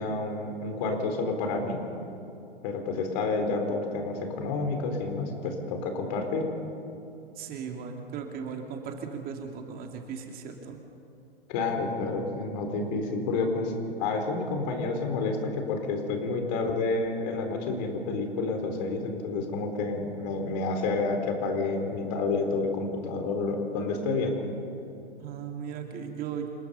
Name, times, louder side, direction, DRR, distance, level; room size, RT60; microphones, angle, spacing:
voice 1, 0.0-1.8 2.6-6.5 11.5-24.4, left 3 dB, 45° left, 4 dB, 4.1 m, -29 dB
voice 2, 7.4-10.8 25.2-26.5, right 7 dB, 30° right, 3 dB, 2.4 m, -37 dB
27.5 x 20.0 x 5.5 m, 2.7 s
figure-of-eight pair, 110°, 30 cm